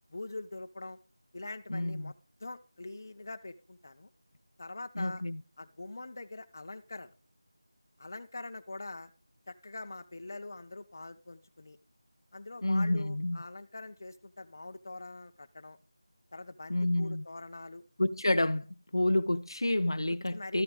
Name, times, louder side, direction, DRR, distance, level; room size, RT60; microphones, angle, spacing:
voice 1, 0.1-1.0 1.3-2.1 2.4-4.1 4.6-5.2 5.6-7.1 8.0-9.1 9.5-11.8 12.3-15.8 16.3-17.8 20.3-20.6, left 2 dB, 45° left, 1.0 m, -44 dB
voice 2, 1.7-2.1 5.0-5.4 12.6-13.4 16.7-17.2 18.0-18.7 18.9-20.6, left 1 dB, 90° left, 0.7 m, -29 dB
13.0 x 8.8 x 4.7 m
figure-of-eight pair, 175°, 2 cm